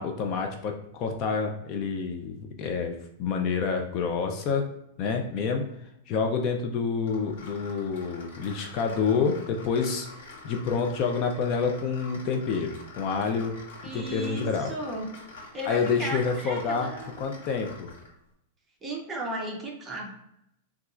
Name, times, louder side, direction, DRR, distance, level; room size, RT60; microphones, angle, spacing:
voice 1, 0.0-4.7 5.0-5.7 6.1-10.1 10.4-13.6 13.9-14.7 15.7-16.9 17.2-17.9, left 5 dB, 35° left, 4 dB, 0.4 m, -28 dB
sound 1, 7.1-18.2, left 3 dB, 80° left, 1.0 m, -46 dB
voice 2, 13.8-15.1 15.5-17.1 18.8-20.2, right 1 dB, 15° right, 0 dB, 0.6 m, -35 dB
4.1 x 2.3 x 2.4 m, 0.80 s
supercardioid pair, 155°, 0 cm